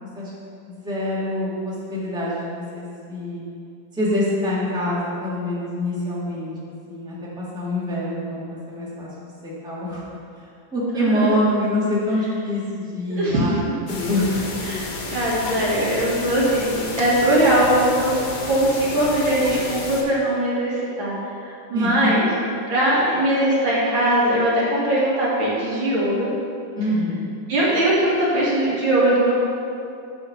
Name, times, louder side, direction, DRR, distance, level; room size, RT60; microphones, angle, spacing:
voice 1, 0.6-3.4 3.9-10.0 10.7-14.3 14.5-14.6 21.7-22.1 26.7-27.3, left 1 dB, ahead, -7 dB, 1.5 m, -25 dB
voice 2, 10.9-11.3 13.1-13.7 14.6-14.9 15.1-18.2 18.5-21.1 21.7-22.3 22.7-26.3 27.5-29.3, right 1 dB, 85° right, -7 dB, 2.9 m, -20 dB
sound 1, 13.9-20.0, left 2 dB, 50° left, 1.4 m, -31 dB
7.2 x 4.7 x 6.9 m, 2.5 s
omnidirectional pair, 2.1 m